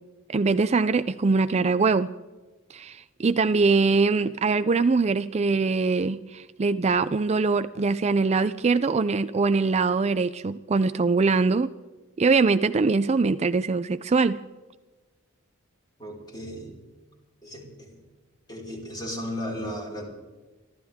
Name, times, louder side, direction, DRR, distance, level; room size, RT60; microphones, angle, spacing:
voice 1, 0.3-2.1 2.7-11.7 12.2-14.4, right 4 dB, 30° right, 12 dB, 0.4 m, -22 dB
voice 2, 16.0-16.7 17.4-17.9 18.5-20.1, equal, 20° left, -2 dB, 5.2 m, -35 dB
27.0 x 13.0 x 3.6 m, 1.2 s
head